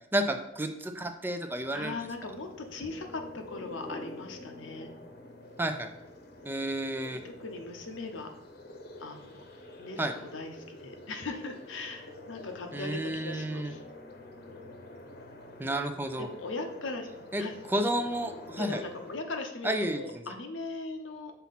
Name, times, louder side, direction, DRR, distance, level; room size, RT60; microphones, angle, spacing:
voice 1, 0.1-1.9 5.6-5.9 6.4-7.2 10.0-10.1 12.7-13.7 15.6-16.3 17.3-17.4 17.7-18.8 19.6-20.0, right 1 dB, 10° right, 6 dB, 0.4 m, -31 dB
sound 1, 1.6-19.2, left 2 dB, 55° left, 0.9 m, -47 dB
voice 2, 1.7-4.9 7.2-8.3 9.0-9.4 9.8-13.8 16.2-17.1 17.3-17.5 18.5-21.3, left 3 dB, 85° left, 5 dB, 0.8 m, -39 dB
5.7 x 4.1 x 4.1 m, 0.91 s
head